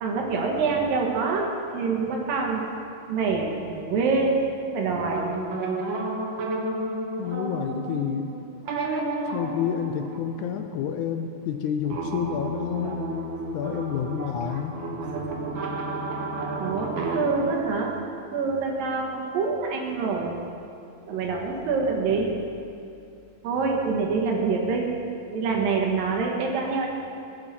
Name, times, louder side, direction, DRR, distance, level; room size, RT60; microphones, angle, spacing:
voice 1, 0.0-2.7 3.1-4.4 4.7-5.3 16.6-17.9 18.3-20.4 21.1-22.4 23.4-24.9 25.3-26.9, right 4 dB, 90° right, 0 dB, 3.3 m, -26 dB
sound 1, 5.1-11.1 11.8-17.5, right 2 dB, 65° right, 1.2 m, -32 dB
voice 2, 7.2-8.3 9.3-13.1 13.5-14.8, left 8 dB, 80° left, 6 dB, 1.8 m, -29 dB
21.0 x 8.6 x 4.4 m, 2.6 s
omnidirectional pair, 3.9 m